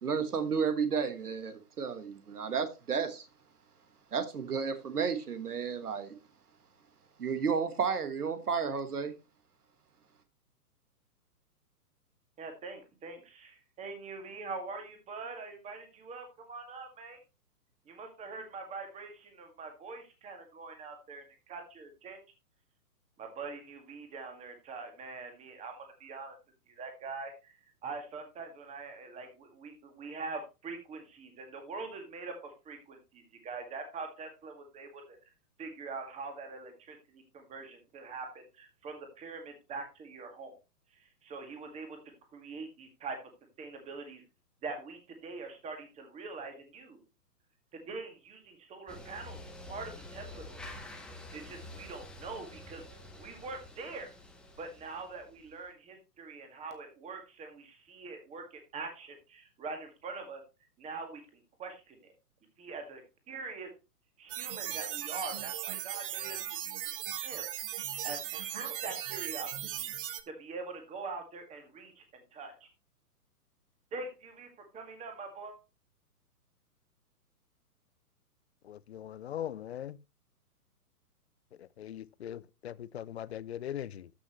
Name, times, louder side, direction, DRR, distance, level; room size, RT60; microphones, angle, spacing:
voice 1, 0.0-3.3 4.1-6.2 7.2-9.1, right 6 dB, 70° right, 1.4 m, -32 dB
voice 2, 12.4-17.2 17.9-22.2 23.2-26.4 26.7-27.5 27.8-35.2 35.6-40.5 40.9-42.0 42.3-43.2 43.6-44.2 44.6-47.0 47.7-50.6 51.3-52.8 53.2-54.1 54.6-60.4 60.8-62.1 62.6-63.0 63.3-63.7 64.2-66.8 67.2-67.4 68.0-69.9 70.3-72.7 73.9-75.5, right 4 dB, 15° right, 1.9 m, -43 dB
sound 1, 48.9-55.7, left 1 dB, ahead, 1.0 m, -48 dB
sound 2, 64.3-70.2, right 11 dB, 35° right, 1.0 m, -38 dB
voice 3, 78.6-80.0 81.6-84.1, left 10 dB, 45° left, 0.5 m, -40 dB
13.5 x 6.1 x 3.0 m
figure-of-eight pair, 125°, 47 cm